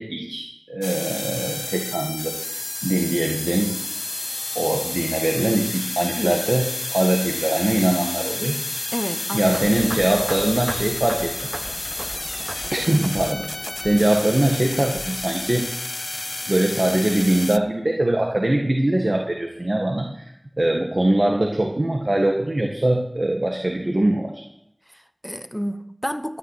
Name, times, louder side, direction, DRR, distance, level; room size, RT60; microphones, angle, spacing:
voice 1, 0.0-3.8 4.5-8.6 9.3-11.3 12.7-15.7 16.5-20.3 20.6-24.4, right 1 dB, 65° right, 1.7 m, -22 dB
sound 1, 0.8-17.6, left 2 dB, 70° left, 0.5 m, -30 dB
voice 2, 8.9-9.7 24.9-26.4, equal, 5° left, 1.1 m, -30 dB
sound 2, 9.5-15.7, right 1 dB, 45° right, 1.1 m, -36 dB
13.0 x 9.1 x 8.1 m
wide cardioid pair, 40°, 0 cm